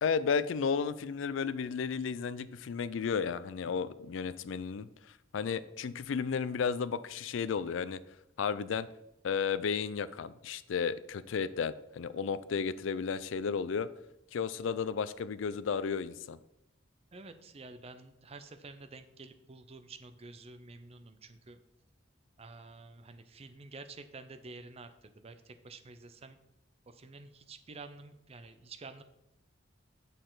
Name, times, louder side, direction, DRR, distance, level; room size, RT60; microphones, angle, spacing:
voice 1, 0.0-4.9 5.3-8.0 8.4-8.9 9.2-13.9 14.3-16.4, left 6 dB, 75° left, 16 dB, 0.4 m, -33 dB
voice 2, 17.1-21.6 22.4-26.4 26.9-29.0, right 3 dB, 30° right, 9 dB, 0.5 m, -49 dB
6.7 x 6.5 x 3.9 m, 0.87 s
head